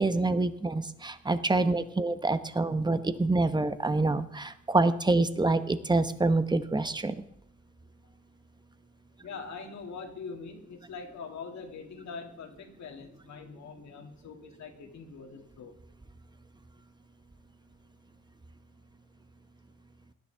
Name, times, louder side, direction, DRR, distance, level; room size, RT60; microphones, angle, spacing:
voice 1, 0.0-7.2, right 2 dB, 15° right, 11 dB, 1.0 m, -26 dB
voice 2, 9.2-15.8, left 5 dB, 65° left, 3 dB, 2.4 m, -43 dB
18.0 x 11.5 x 3.5 m, 0.72 s
cardioid pair, 90°, 30 cm